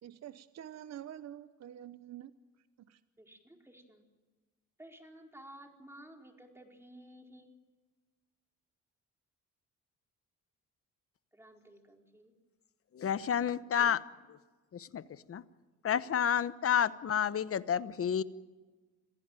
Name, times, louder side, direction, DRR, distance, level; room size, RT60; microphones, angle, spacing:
voice 1, 0.0-2.3 2.8-3.0, right 11 dB, 60° right, 0.9 m, -47 dB
voice 2, 3.2-4.0 4.8-7.5 11.3-12.3, right 1 dB, 10° right, 4.3 m, -54 dB
voice 3, 12.9-14.0 14.3-14.4 14.7-15.0 15.3-15.4 15.8-18.2, left 8 dB, 50° left, 1.1 m, -30 dB
27.0 x 16.5 x 9.1 m
cardioid pair, 90°, 30 cm